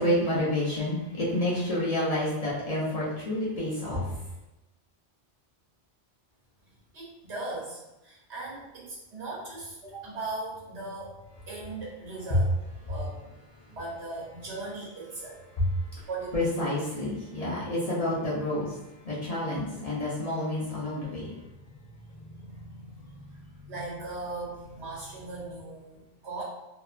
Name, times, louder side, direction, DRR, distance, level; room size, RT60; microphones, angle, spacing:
voice 1, 0.0-4.0 15.6-15.7 16.0-16.1 16.3-18.8 19.0-21.3 22.2-23.7, left 1 dB, 45° left, -7 dB, 0.6 m, -29 dB
voice 2, 6.9-11.2 11.5-12.5 12.9-13.3 13.7-15.4 16.1-16.3 23.7-26.4, right 2 dB, 90° right, -5 dB, 1.3 m, -38 dB
2.7 x 2.1 x 2.4 m, 0.97 s
omnidirectional pair, 1.1 m